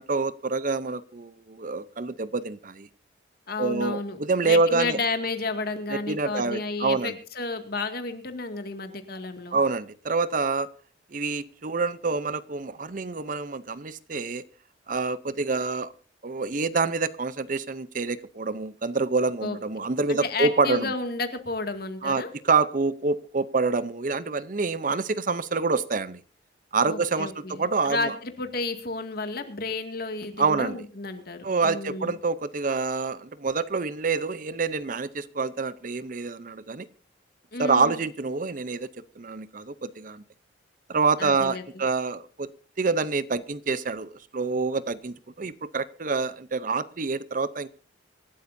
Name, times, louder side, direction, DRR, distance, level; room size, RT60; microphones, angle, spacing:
voice 1, 0.0-2.9 3.6-5.0 5.9-7.1 9.5-10.7 11.1-14.4 14.9-15.9 16.2-20.9 22.0-26.2 26.7-28.1 30.4-30.8 31.4-36.9 37.6-38.9 39.2-40.2 40.9-42.5 42.8-47.7, right 4 dB, 45° right, 16 dB, 0.7 m, -27 dB
voice 2, 3.5-9.6 19.4-19.6 20.1-22.3 26.9-32.1 37.5-38.0 41.2-41.6, left 3 dB, 55° left, 7 dB, 2.1 m, -32 dB
25.5 x 12.5 x 2.7 m, 0.39 s
head